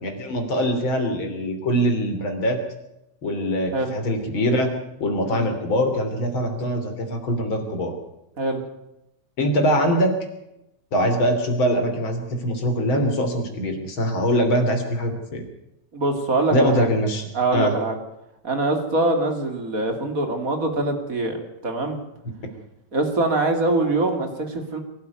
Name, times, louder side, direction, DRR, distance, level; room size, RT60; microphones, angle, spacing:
voice 1, 0.0-2.6 3.2-4.7 5.0-7.9 9.4-10.2 10.9-15.4 16.5-17.2 17.5-17.7, equal, 45° left, 6 dB, 3.8 m, -23 dB
voice 2, 15.9-16.9 17.3-18.0 18.4-21.4 21.6-22.0 22.9-24.8, right 2 dB, 30° right, 5 dB, 2.9 m, -23 dB
23.5 x 12.0 x 9.3 m, 0.86 s
omnidirectional pair, 3.3 m